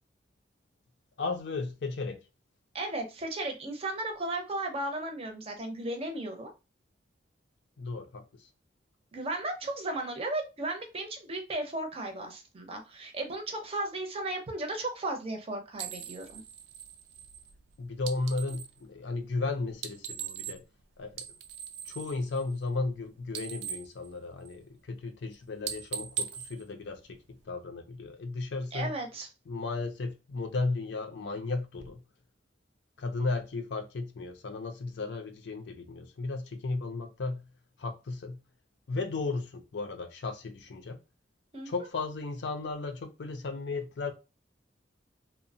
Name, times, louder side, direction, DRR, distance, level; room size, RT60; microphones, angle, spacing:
voice 1, 1.2-2.2 7.8-8.5 17.8-20.6 21.0-21.3 21.9-28.9 29.5-32.0 33.0-37.5 37.8-38.4 38.9-41.0 41.7-44.1, left 3 dB, 70° left, 0.5 m, -35 dB
voice 2, 2.7-6.5 9.1-16.4 28.7-29.3 41.5-41.7, right 2 dB, 35° right, 0.6 m, -35 dB
sound 1, 15.8-18.8 19.7-20.8 21.1-23.0 23.2-24.8 25.1-25.3 25.6-27.5, right 8 dB, 85° right, 0.4 m, -40 dB
2.8 x 2.0 x 2.6 m
head